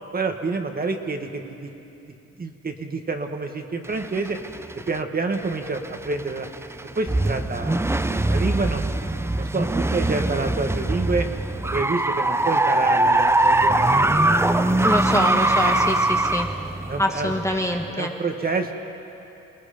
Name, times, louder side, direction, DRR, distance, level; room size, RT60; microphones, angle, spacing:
voice 1, 0.1-1.7 2.4-4.4 4.9-6.5 7.0-8.8 9.4-11.3 11.6-14.6 15.6-15.8 16.9-17.3 18.0-18.7, right 3 dB, 30° right, 5 dB, 1.6 m, -28 dB
sound 1, 3.8-5.0 5.4-18.0, right 2 dB, 10° right, 0.6 m, -22 dB
voice 2, 14.8-16.5 17.0-18.1, left 1 dB, 10° left, 3 dB, 1.2 m, -25 dB
27.0 x 19.0 x 5.2 m, 2.9 s
cardioid pair, 90°, 30 cm